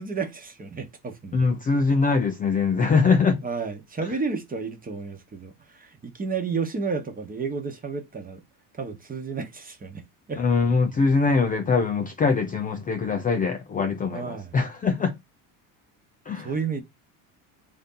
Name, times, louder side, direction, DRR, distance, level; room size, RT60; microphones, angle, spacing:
voice 1, 0.0-1.5 3.4-8.4 8.8-10.0 10.3-10.4 14.1-14.6 16.4-16.8, right 5 dB, 20° right, 1.0 m, -31 dB
voice 2, 1.3-3.4 10.4-15.2 16.3-16.5, left 4 dB, 20° left, 0.4 m, -22 dB
3.7 x 2.7 x 3.8 m
cardioid pair, 115°, 41 cm